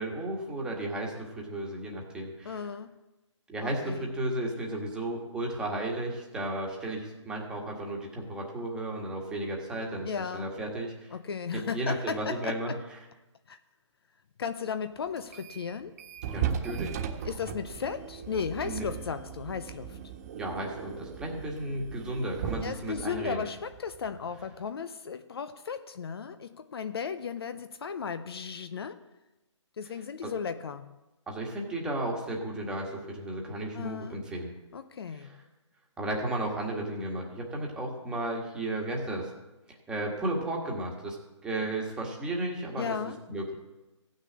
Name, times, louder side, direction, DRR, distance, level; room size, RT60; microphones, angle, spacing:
voice 1, 0.0-2.7 3.5-11.1 11.5-12.7 16.3-16.9 18.6-18.9 20.3-23.4 30.2-30.3 31.3-34.5 35.1-35.4 36.0-39.3 39.9-41.2 41.4-43.0 43.3-43.5, right 1 dB, 5° right, 1.6 m, -34 dB
voice 2, 2.4-2.9 3.6-4.1 10.1-10.5 11.1-12.8 13.5-13.6 14.4-16.0 17.2-20.0 22.6-29.0 29.8-31.0 33.7-34.2 34.7-35.4 42.8-43.2, left 6 dB, 50° left, 0.7 m, -35 dB
sound 1, 15.2-15.7 16.0-24.4, right 8 dB, 30° right, 1.5 m, -38 dB
15.5 x 6.5 x 8.6 m
hypercardioid pair, 160°, 16 cm